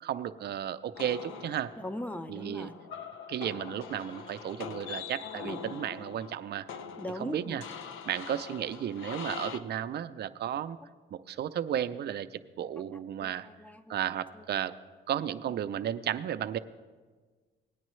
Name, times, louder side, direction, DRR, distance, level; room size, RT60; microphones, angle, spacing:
voice 1, 0.0-1.7 2.3-2.7 3.3-6.7 7.2-7.6 8.1-10.8 11.1-13.5 13.9-14.7 15.1-16.6, right 10 dB, 55° right, 12 dB, 0.5 m, -34 dB
sound 1, 0.9-9.6, left 7 dB, 85° left, 0.6 m, -43 dB
voice 2, 1.8-2.7 5.4-5.6 7.0-7.6 13.2-13.3 13.6-14.0 14.4-14.5, left 1 dB, 10° left, 10 dB, 0.7 m, -39 dB
18.0 x 9.8 x 3.1 m, 1.4 s
cardioid pair, 90°, 20 cm